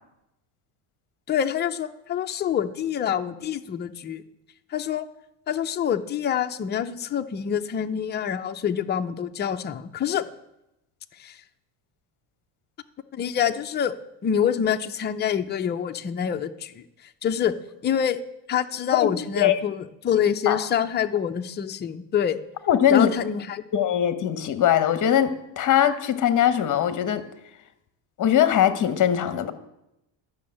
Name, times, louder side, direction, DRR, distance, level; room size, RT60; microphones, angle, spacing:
voice 1, 1.3-4.2 4.7-5.1 5.5-10.3 11.2-11.4 13.1-13.9 14.2-16.8 17.2-17.6 17.8-18.2 18.5-22.4 22.9-23.6, left 8 dB, 20° left, 6 dB, 0.5 m, -26 dB
voice 2, 22.7-23.1 23.7-27.2 28.2-29.5, left 10 dB, 40° left, 11 dB, 1.1 m, -21 dB
11.5 x 6.2 x 8.7 m, 0.87 s
cardioid pair, 140°, 49 cm